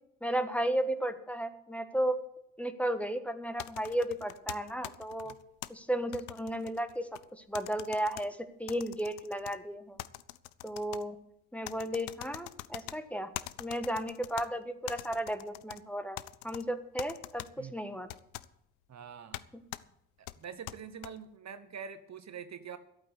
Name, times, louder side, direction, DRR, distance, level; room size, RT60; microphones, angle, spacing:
voice 1, 0.2-2.2 2.6-5.3 5.7-10.0 10.6-11.2 11.5-13.3 13.6-16.2 16.4-18.1 19.5-19.6, right 1 dB, 5° left, 10 dB, 1.4 m, -34 dB
sound 1, 3.6-5.7 6.1-7.2 7.5-8.2 8.7-9.5 10.0-11.0 11.6-13.0 13.3-14.5 14.9-15.8 16.2-16.6 17.0-17.5 18.1-18.5 19.3-19.4 19.7-19.8 20.3-21.1, left 17 dB, 80° left, 0.6 m, -43 dB
voice 2, 18.9-19.4 20.4-22.8, right 7 dB, 40° right, 11 dB, 1.1 m, -45 dB
12.0 x 8.6 x 8.3 m, 0.79 s
hypercardioid pair, 50°, 41 cm